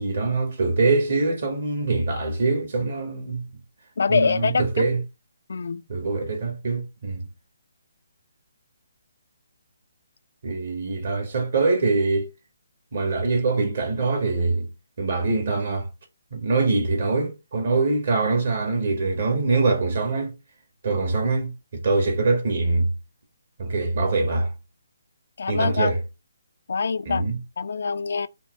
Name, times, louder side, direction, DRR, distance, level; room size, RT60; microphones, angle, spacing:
voice 1, 0.0-3.4 4.1-5.0 5.9-7.3 10.4-12.3 12.9-14.7 15.0-15.9 16.3-20.3 20.8-22.9 23.6-24.5 25.5-26.0 27.1-27.4, right 3 dB, 55° right, 1.8 m, -23 dB
voice 2, 4.0-4.8 5.5-5.8 25.4-25.9 26.7-27.3 27.6-28.3, left 5 dB, 65° left, 0.5 m, -24 dB
5.5 x 2.3 x 3.9 m
figure-of-eight pair, 145°, 0 cm